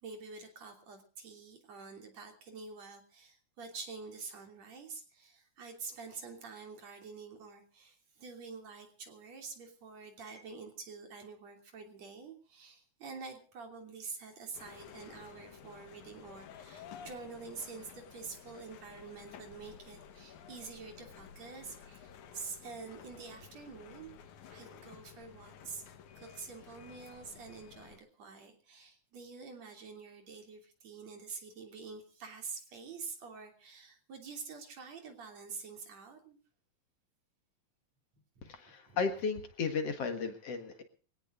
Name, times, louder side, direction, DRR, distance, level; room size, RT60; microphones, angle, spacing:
voice 1, 0.0-24.1 24.5-25.8 26.2-36.4 38.4-38.5, right 4 dB, 60° right, 4 dB, 4.1 m, -47 dB
sound 1, 14.5-28.0, left 8 dB, 85° left, 2.8 m, -53 dB
voice 2, 38.4-40.8, left 5 dB, 60° left, 7 dB, 2.6 m, -34 dB
24.0 x 17.5 x 2.6 m, 0.40 s
omnidirectional pair, 3.4 m